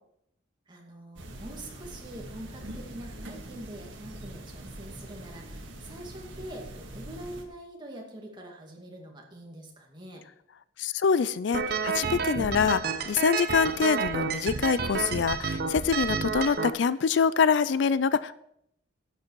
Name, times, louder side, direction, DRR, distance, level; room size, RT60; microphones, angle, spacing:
voice 1, 0.7-10.2, right 1 dB, 25° right, 0 dB, 2.2 m, -44 dB
sound 1, 1.2-7.4, right 1 dB, 70° right, 1.9 m, -43 dB
voice 2, 10.8-18.3, left 6 dB, 60° left, 16 dB, 0.4 m, -25 dB
sound 2, 11.5-16.7, right 5 dB, 50° right, 0.8 m, -30 dB
12.0 x 8.3 x 4.6 m, 0.74 s
head